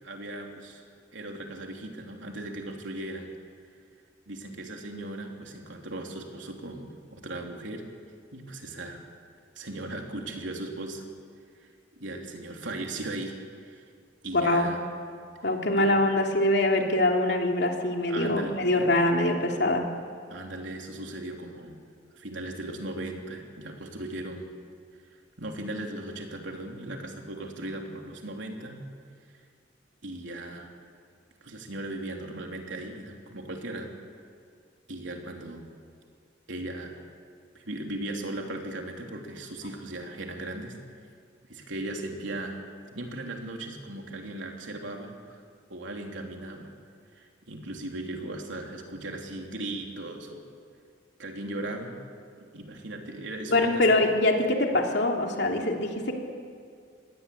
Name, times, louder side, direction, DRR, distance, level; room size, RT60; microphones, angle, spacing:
voice 1, 0.0-0.8 1.1-3.3 4.3-7.8 8.3-9.0 9.6-11.0 11.6-11.7 12.0-13.3 13.6-13.8 14.2-14.8 15.7-16.0 18.1-18.6 20.3-21.8 22.1-24.5 25.4-28.8 30.0-30.7 31.4-33.9 34.9-35.7 36.5-37.0 37.6-40.8 41.5-42.6 42.9-45.4 45.7-46.7 47.1-50.4 51.2-52.0 52.4-54.0, right 1 dB, 80° right, 2 dB, 3.5 m, -37 dB
voice 2, 14.3-14.7 15.4-19.9 53.5-56.1, left 1 dB, 60° left, 1 dB, 3.2 m, -24 dB
26.5 x 20.5 x 8.6 m, 2.2 s
head